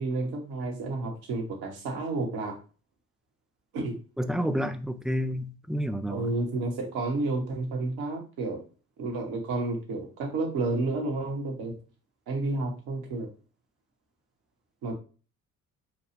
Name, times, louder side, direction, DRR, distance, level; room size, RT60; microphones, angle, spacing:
voice 1, 0.0-2.6 3.7-4.0 6.1-8.6 9.0-11.7 12.3-13.3 14.8-14.9, right 2 dB, 60° right, 1.4 m, -31 dB
voice 2, 4.2-6.2, equal, ahead, 0.3 m, -29 dB
6.4 x 2.3 x 3.2 m
figure-of-eight pair, 50°, 42 cm